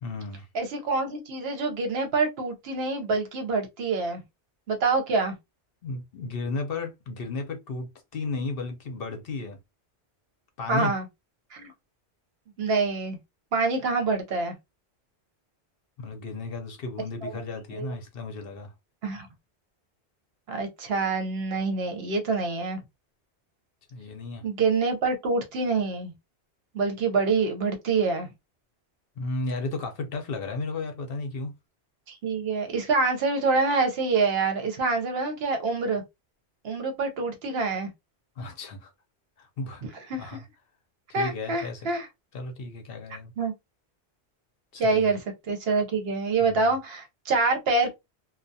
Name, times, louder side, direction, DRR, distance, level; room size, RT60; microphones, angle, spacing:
voice 1, 0.0-0.5 5.8-9.6 10.6-10.9 16.0-18.7 23.9-24.4 29.2-31.5 38.4-38.9 39.4-39.8 40.2-40.4 41.2-41.9 42.3-43.3 44.7-45.1 46.4-46.6, left 3 dB, 60° left, 0.8 m, -34 dB
voice 2, 0.5-4.2 4.7-5.4 10.7-11.1 11.5-11.7 12.6-13.2 13.5-14.5 17.2-17.3 17.7-17.9 19.0-19.3 20.5-22.8 24.4-26.1 26.7-28.3 32.1-36.0 36.6-37.9 40.1-40.4 41.1-42.1 43.4-43.5 44.8-47.9, right 4 dB, 65° right, 0.9 m, -26 dB
2.3 x 2.2 x 2.6 m
omnidirectional pair, 1.1 m